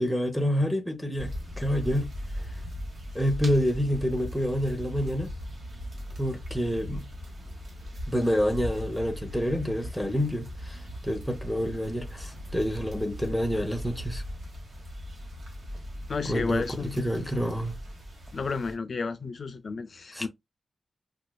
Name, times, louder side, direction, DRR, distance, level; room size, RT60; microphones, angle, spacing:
voice 1, 0.0-2.1 3.1-5.3 6.2-7.1 8.1-14.2 16.3-17.8 20.1-20.3, equal, ahead, 0.6 m, -28 dB
sound 1, 1.2-18.7, equal, 65° right, 1.3 m, -39 dB
voice 2, 16.1-17.0 18.3-20.3, left 4 dB, 50° left, 0.4 m, -32 dB
4.9 x 2.3 x 2.2 m
wide cardioid pair, 165°, 0 cm